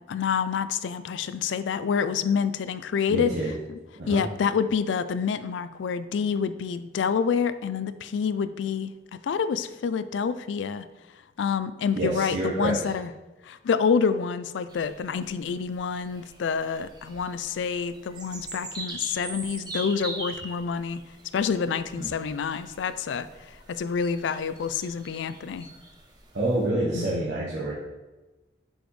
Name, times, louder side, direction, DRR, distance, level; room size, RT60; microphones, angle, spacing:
voice 1, 0.1-3.3 3.7-3.8 4.1-8.9 9.2-10.8 11.4-13.1 13.4-21.0 21.3-25.7 26.9-27.2, left 6 dB, 90° left, 13 dB, 0.3 m, -27 dB
voice 2, 3.1-3.5 4.0-4.2 11.9-12.9 22.0-22.1 26.3-27.7, right 1 dB, 75° right, -7 dB, 1.1 m, -27 dB
sound 1, 14.7-26.6, right 2 dB, 25° right, 0.7 m, -42 dB
6.1 x 5.1 x 3.2 m, 1.1 s
head